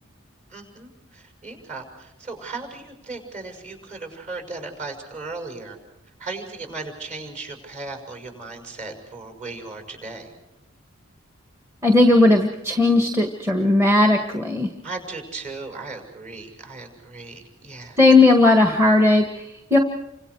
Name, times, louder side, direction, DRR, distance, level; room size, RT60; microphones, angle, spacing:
voice 1, 0.5-5.8 6.2-10.3 14.8-18.0, right 3 dB, 35° right, 5 dB, 6.4 m, -36 dB
voice 2, 11.8-14.7 18.0-19.8, left 2 dB, 10° right, 4 dB, 1.7 m, -16 dB
30.0 x 26.0 x 4.8 m, 0.90 s
head